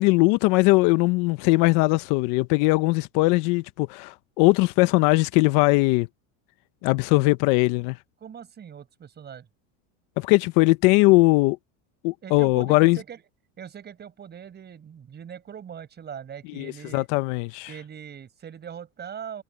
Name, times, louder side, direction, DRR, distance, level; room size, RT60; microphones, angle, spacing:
voice 1, 0.0-6.1 6.8-8.0 10.2-11.6 12.0-13.0 16.6-17.7, left 23 dB, 60° left, 0.8 m, -20 dB
voice 2, 8.2-9.5 12.2-13.2 13.6-17.1 17.7-19.4, right 8 dB, 25° right, 5.3 m, -41 dB
supercardioid pair, 140°, 38 cm